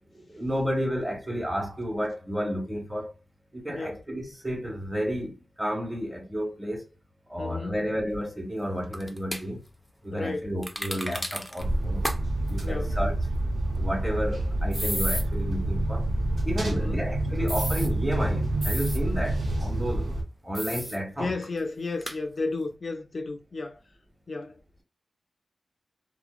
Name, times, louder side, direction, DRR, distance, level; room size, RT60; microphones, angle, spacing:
voice 1, 0.1-3.1 3.5-6.9 7.3-9.6 10.0-12.1 12.5-13.2 13.7-16.1 16.4-20.1 20.4-21.3, equal, 15° right, 1.4 m, -31 dB
voice 2, 3.7-4.0 7.4-7.9 10.1-10.5 12.6-13.0 16.6-17.0 21.2-23.8 24.3-24.6, left 3 dB, 55° left, 0.4 m, -33 dB
sound 1, 8.9-9.4 10.6-11.6 12.0-12.2 12.5-12.6 14.7-15.2 17.5-17.9 18.6-19.0 20.5-21.0 21.4-21.5 22.0-22.2, equal, ahead, 0.6 m, -32 dB
sound 2, 11.6-20.2, right 1 dB, 80° right, 0.8 m, -27 dB
2.8 x 2.1 x 2.4 m
cardioid pair, 55°, 0 cm